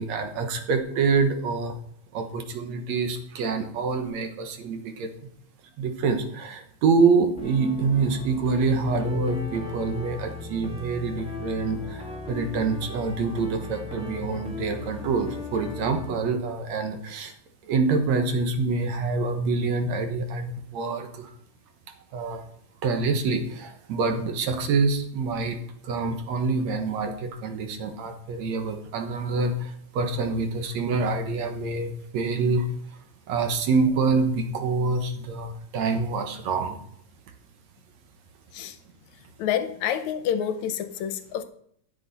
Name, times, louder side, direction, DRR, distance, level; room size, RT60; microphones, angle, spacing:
voice 1, 0.0-1.8 2.1-5.1 5.8-17.3 17.6-21.3 22.1-22.4 22.8-25.6 25.8-32.7 33.3-36.8, right 4 dB, 70° right, 6 dB, 2.4 m, -26 dB
sound 1, 7.4-16.1, left 3 dB, 5° right, 1.1 m, -37 dB
voice 2, 39.4-41.4, left 9 dB, 80° left, 10 dB, 2.1 m, -28 dB
14.0 x 7.7 x 4.1 m, 0.67 s
omnidirectional pair, 3.3 m